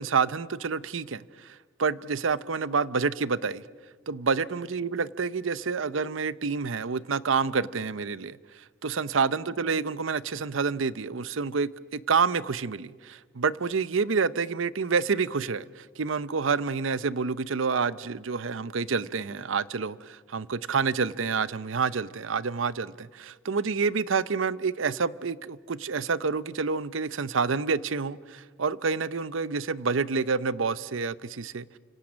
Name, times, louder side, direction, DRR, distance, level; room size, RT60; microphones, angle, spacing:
voice 1, 0.0-3.6 4.1-31.8, right 5 dB, 90° right, 0.7 m, -28 dB
29.0 x 26.0 x 6.3 m
head